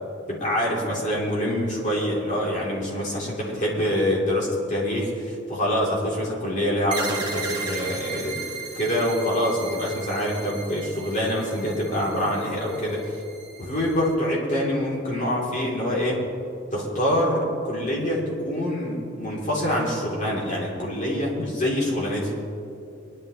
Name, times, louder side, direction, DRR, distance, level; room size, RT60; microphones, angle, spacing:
voice 1, 0.3-8.4 8.7-13.0 13.6-16.2 16.7-22.4, equal, 40° left, -5 dB, 3.3 m, -25 dB
sound 1, 6.9-14.1, right 4 dB, 25° right, 1.7 m, -36 dB
22.0 x 11.0 x 3.2 m, 2.6 s
head